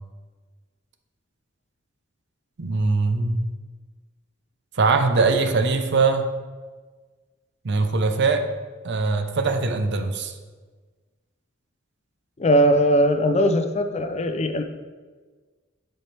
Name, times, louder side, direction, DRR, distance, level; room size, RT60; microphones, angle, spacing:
voice 1, 2.6-3.5 4.8-6.3 7.6-8.5 8.8-10.3, right 3 dB, 60° right, 7 dB, 0.6 m, -21 dB
voice 2, 12.4-14.6, equal, 35° left, 7 dB, 0.5 m, -20 dB
10.5 x 4.4 x 3.3 m, 1.4 s
head